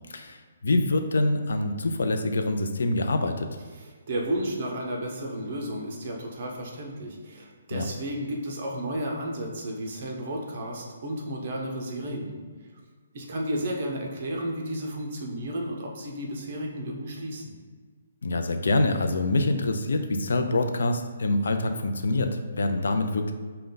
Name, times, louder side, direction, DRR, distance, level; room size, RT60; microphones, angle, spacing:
voice 1, 0.1-3.5 7.7-7.8 18.2-23.3, left 2 dB, 80° left, 6 dB, 0.4 m, -25 dB
voice 2, 3.7-12.4 13.1-17.6, right 1 dB, 35° right, 0 dB, 0.7 m, -33 dB
5.0 x 2.2 x 3.8 m, 1.5 s
hypercardioid pair, 175°, 0 cm